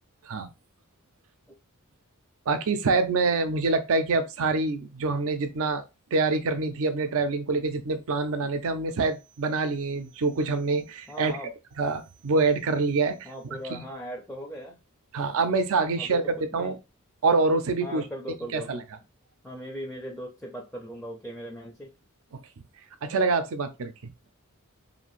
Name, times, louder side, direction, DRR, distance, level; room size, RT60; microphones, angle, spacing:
voice 1, 2.5-5.8 6.1-11.3 11.8-13.3 13.7-13.8 15.1-16.8 17.2-18.0 18.5-18.8 23.0-24.1, right 3 dB, 65° right, 0.5 m, -26 dB
voice 2, 11.1-11.5 13.2-14.8 16.0-16.7 17.8-18.8 19.4-21.9, equal, 5° left, 0.4 m, -39 dB
2.7 x 2.5 x 3.0 m
head